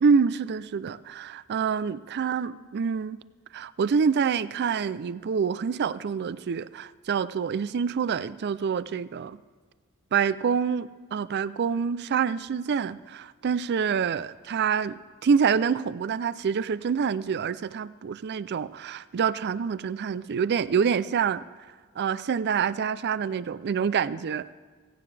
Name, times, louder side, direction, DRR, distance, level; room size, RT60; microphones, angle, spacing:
voice 1, 0.0-3.2 3.5-9.4 10.1-21.4 22.0-24.5, right 6 dB, 50° right, 17 dB, 0.4 m, -26 dB
17.0 x 16.5 x 3.3 m, 1.5 s
head